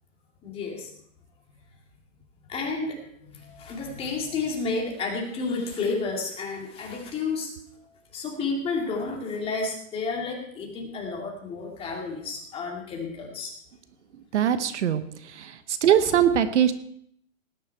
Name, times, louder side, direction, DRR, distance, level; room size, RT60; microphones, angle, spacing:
voice 1, 0.4-0.9 2.5-3.0 3.3-7.5 8.1-13.5, left 4 dB, 15° left, -1 dB, 2.4 m, -31 dB
voice 2, 14.3-15.0 15.4-16.7, right 9 dB, 60° right, 12 dB, 1.0 m, -21 dB
18.0 x 9.9 x 4.6 m, 0.68 s
hypercardioid pair, 155°, 40 cm